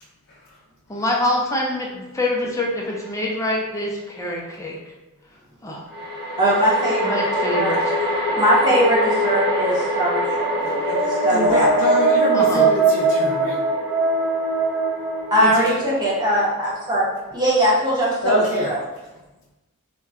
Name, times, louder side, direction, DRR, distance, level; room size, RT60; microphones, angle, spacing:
voice 1, 0.9-4.8 5.6-5.8 7.0-7.8 12.3-12.7, left 1 dB, 15° left, -2 dB, 0.4 m, -25 dB
sound 1, 2.9-3.0 5.9-17.3, left 1 dB, 50° right, 1.1 m, -26 dB
voice 2, 6.4-7.8 8.2-11.8 15.3-17.1 17.3-18.8, right 1 dB, 20° right, -6 dB, 0.8 m, -21 dB
sound 2, 10.4-16.2, right 3 dB, 65° right, 0.6 m, -21 dB
voice 3, 11.3-13.6 15.4-15.8 18.2-18.7, left 1 dB, 60° left, -5 dB, 0.5 m, -25 dB
3.6 x 2.1 x 2.4 m, 1.0 s
head